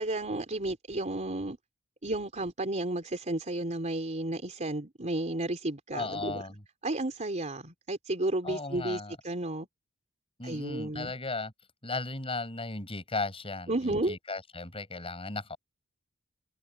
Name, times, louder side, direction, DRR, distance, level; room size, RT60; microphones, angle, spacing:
voice 1, 0.0-1.6 2.0-6.4 6.8-9.7 10.4-11.1 13.7-14.2, right 2 dB, 35° right, 3.9 m, -32 dB
voice 2, 5.9-6.6 8.4-9.2 10.4-11.5 11.8-15.6, left 3 dB, 25° left, 7.2 m, -36 dB
open air
head